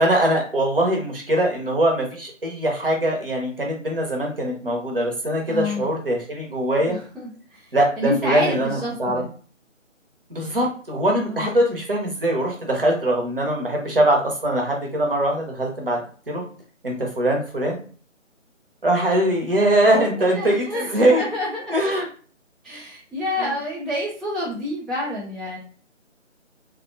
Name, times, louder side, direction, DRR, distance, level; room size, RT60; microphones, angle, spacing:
voice 1, 0.0-7.0 7.7-9.2 10.3-16.0 16.3-16.4 16.8-17.8 18.8-21.3 21.7-22.1 23.4-23.5, right 1 dB, 45° right, 0 dB, 0.7 m, -22 dB
voice 2, 5.5-5.9 6.9-7.7 8.0-9.3 11.2-11.6 20.2-21.9 22.6-25.6, left 1 dB, ahead, -7 dB, 0.4 m, -29 dB
2.4 x 2.1 x 2.5 m, 0.42 s
figure-of-eight pair, 175°, 38 cm